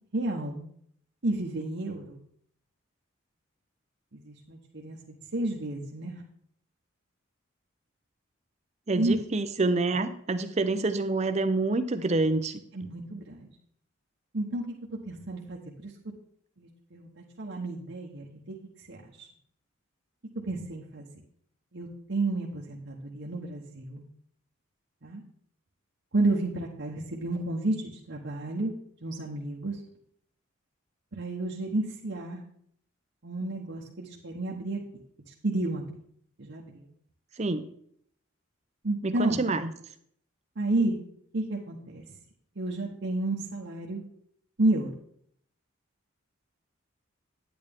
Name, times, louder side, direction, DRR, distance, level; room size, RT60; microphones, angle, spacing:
voice 1, 0.1-0.6 1.2-2.2 4.1-6.2 9.0-9.1 12.7-13.5 14.3-14.6 15.1-15.9 16.6-18.6 18.9-19.3 20.4-21.1 21.7-24.0 25.0-25.2 26.1-28.7 29.0-29.8 31.1-32.4 33.2-34.8 35.4-35.8 36.4-36.8 38.8-39.4 40.6-41.0 41.3-42.0 42.6-44.0 44.6-44.9, right 2 dB, 60° right, -3 dB, 1.0 m, -31 dB
voice 2, 8.9-12.6 37.4-37.7 39.0-39.7, right 3 dB, 30° right, 10 dB, 0.6 m, -27 dB
9.5 x 8.9 x 3.6 m, 0.66 s
head